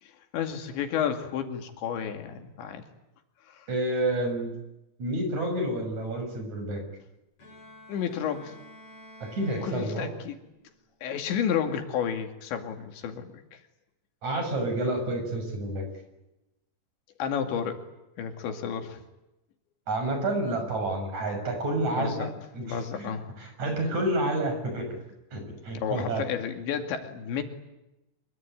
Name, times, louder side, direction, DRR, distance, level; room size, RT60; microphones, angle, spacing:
voice 1, 0.0-2.8 3.5-3.7 7.9-8.6 9.6-10.4 11.0-13.6 17.2-17.8 18.2-19.0 22.0-23.2 25.7-27.4, left 8 dB, 90° left, 6 dB, 4.7 m, -31 dB
voice 2, 3.7-4.5 5.0-6.8 9.2-10.1 14.2-15.8 19.9-24.9 25.3-26.2, right 1 dB, 40° right, 5 dB, 7.7 m, -29 dB
Bowed string instrument, 7.4-10.5, left 1 dB, 40° left, 8.0 m, -50 dB
25.5 x 23.5 x 9.2 m, 0.94 s
omnidirectional pair, 5.0 m